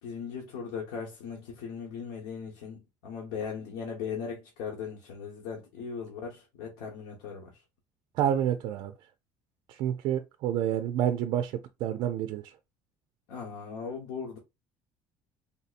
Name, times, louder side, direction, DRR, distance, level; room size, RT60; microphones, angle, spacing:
voice 1, 0.0-7.6 13.3-14.4, left 6 dB, 80° left, 1.2 m, -38 dB
voice 2, 8.2-8.9 9.7-12.5, right 10 dB, 55° right, 0.4 m, -29 dB
3.7 x 2.7 x 2.5 m
cardioid pair, 160°, 9 cm